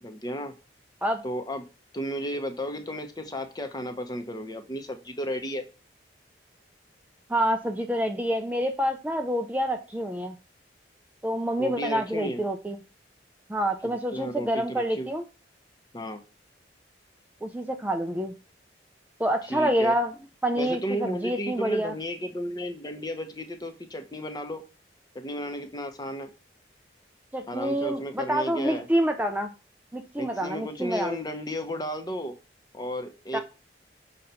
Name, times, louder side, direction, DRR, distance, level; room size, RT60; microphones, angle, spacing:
voice 1, 0.0-0.5 1.2-1.7 1.9-5.6 11.6-12.4 13.8-15.1 15.9-16.2 19.5-19.9 20.6-24.6 25.1-26.3 27.5-28.9 30.2-32.3 32.7-33.4, equal, 20° left, 6 dB, 0.8 m, -33 dB
voice 2, 7.3-10.4 11.2-12.8 13.5-15.2 17.4-18.3 19.2-20.1 20.4-22.0 27.3-29.5 29.9-31.2 33.3-33.4, equal, 10° right, 5 dB, 0.4 m, -27 dB
6.3 x 2.9 x 5.5 m, 0.31 s
head